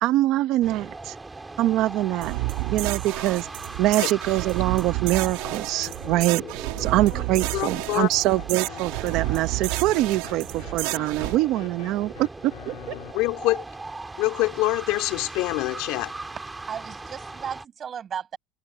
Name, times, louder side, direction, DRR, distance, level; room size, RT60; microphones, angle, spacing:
voice 1, 0.0-1.1 1.6-2.3 2.7-3.5 3.8-12.7, right 16 dB, 45° right, 0.9 m, -24 dB
sound 1, 0.6-17.6, right 3 dB, 10° right, 2.6 m, -39 dB
sound 2, 2.2-11.4, right 22 dB, 70° right, 2.8 m, -30 dB
sound 3, 5.4-13.1, left 23 dB, 75° left, 4.3 m, -45 dB
voice 2, 7.5-8.1 13.1-13.6 14.2-16.1, left 20 dB, 55° left, 3.0 m, -25 dB
voice 3, 16.7-18.4, right 8 dB, 25° right, 6.4 m, -35 dB
cardioid pair, 170°, 0 cm